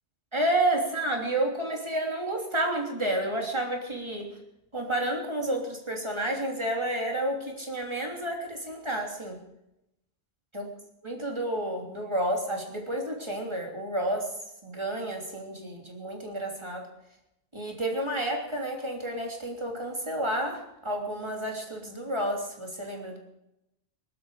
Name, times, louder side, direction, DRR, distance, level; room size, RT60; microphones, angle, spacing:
voice 1, 0.3-4.3 4.7-9.4 10.5-10.6 11.0-14.3 14.6-16.9 17.5-23.2, right 1 dB, 25° right, 1 dB, 3.3 m, -30 dB
21.0 x 12.0 x 5.0 m, 0.86 s
omnidirectional pair, 1.2 m